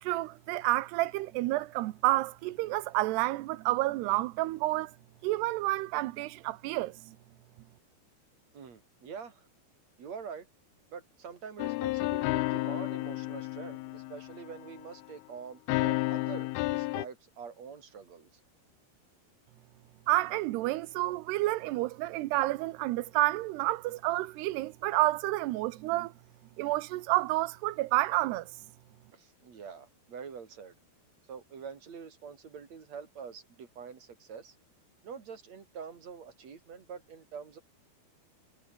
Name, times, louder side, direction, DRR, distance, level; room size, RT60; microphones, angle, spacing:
voice 1, 0.0-4.9 5.2-7.2 20.1-26.1 26.6-28.5, right 18 dB, 80° right, 2.8 m, -29 dB
voice 2, 8.5-9.5 10.0-10.5 10.9-18.3 29.1-30.8 31.3-34.6 35.0-37.6, right 6 dB, 40° right, 4.3 m, -45 dB
sound 1, 11.6-14.8 15.7-17.1, left 21 dB, 85° left, 2.2 m, -31 dB
omnidirectional pair, 5.0 m